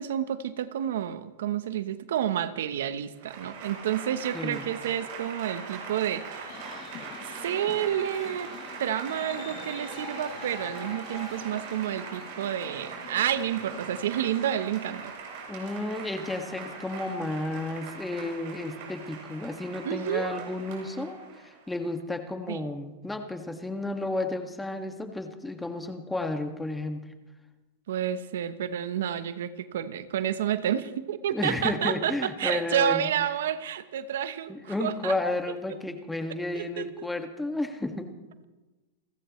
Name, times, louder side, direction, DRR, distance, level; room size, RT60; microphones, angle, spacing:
voice 1, 0.0-6.7 7.2-8.5 8.8-15.1 19.8-20.4 22.5-22.6 27.9-35.2 36.5-37.1, right 10 dB, 75° right, 13 dB, 1.0 m, -30 dB
Applause / Crowd, 3.1-21.7, right 5 dB, 60° right, 7.6 m, -41 dB
voice 2, 4.3-4.7 15.5-27.0 31.3-33.1 34.5-38.1, left 2 dB, 5° left, 5 dB, 1.8 m, -32 dB
sound 1, 6.5-14.1, left 11 dB, 40° left, 1.1 m, -46 dB
30.0 x 14.5 x 3.2 m, 1.2 s
hypercardioid pair, 120°, 0 cm